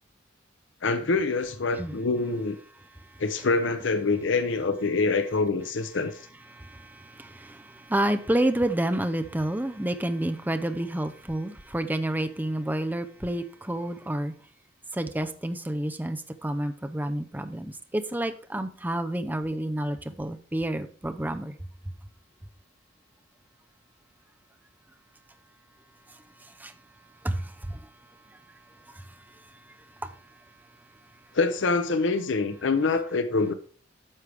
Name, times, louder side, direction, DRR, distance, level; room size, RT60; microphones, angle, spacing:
voice 1, 0.8-2.6 3.2-6.1 31.3-33.5, left 3 dB, 70° left, 0.7 m, -25 dB
voice 2, 6.5-14.3 14.9-21.5 26.4-26.7 27.2-27.9 28.9-29.1, right 1 dB, 10° right, 0.6 m, -29 dB
9.9 x 6.2 x 3.4 m
head